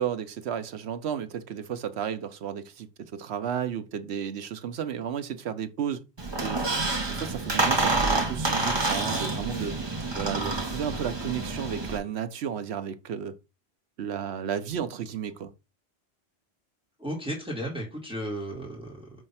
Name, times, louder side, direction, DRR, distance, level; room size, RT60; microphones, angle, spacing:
voice 1, 0.0-6.0 6.4-6.6 7.1-9.8 10.2-13.3 14.0-15.5, right 8 dB, 80° right, 1.0 m, -33 dB
Squeak, 6.2-12.0, right 2 dB, 25° right, 1.1 m, -28 dB
voice 2, 17.0-19.2, equal, 5° right, 2.0 m, -34 dB
5.5 x 3.2 x 5.7 m
omnidirectional pair, 1.1 m